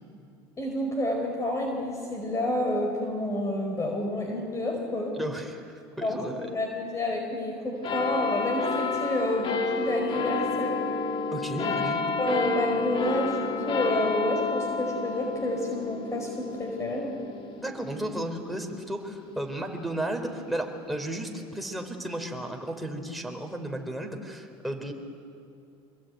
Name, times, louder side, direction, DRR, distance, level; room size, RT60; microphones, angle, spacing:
voice 1, 0.6-5.1 6.0-10.8 12.2-17.2, left 1 dB, 25° left, 2 dB, 4.7 m, -29 dB
voice 2, 5.1-5.6 6.0-6.5 11.3-12.1 17.6-24.9, right 1 dB, ahead, 2 dB, 4.1 m, -34 dB
sound 1, 7.8-20.7 21.4-21.5, left 4 dB, 40° left, 2.6 m, -31 dB
25.5 x 21.5 x 9.3 m, 2.6 s
supercardioid pair, 105°, 13 cm